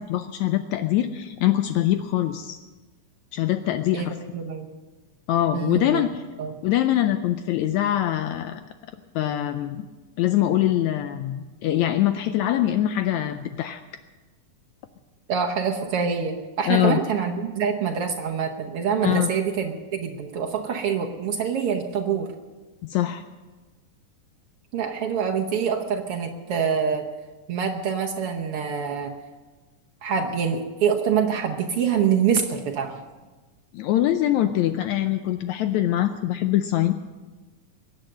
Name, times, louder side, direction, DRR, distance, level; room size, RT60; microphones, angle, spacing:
voice 1, 0.0-2.6 3.3-4.2 5.3-6.2 6.6-8.6 9.2-9.9 10.2-13.8 16.7-17.0 19.0-19.3 22.8-23.2 33.7-36.9, left 12 dB, 85° left, 9 dB, 1.6 m, -23 dB
voice 2, 3.9-4.7 5.5-6.0 6.4-6.5 15.3-22.3 24.7-27.0 27.5-29.1 30.0-33.0, right 7 dB, 70° right, 2 dB, 1.4 m, -25 dB
22.5 x 9.0 x 6.5 m, 1.3 s
omnidirectional pair, 3.8 m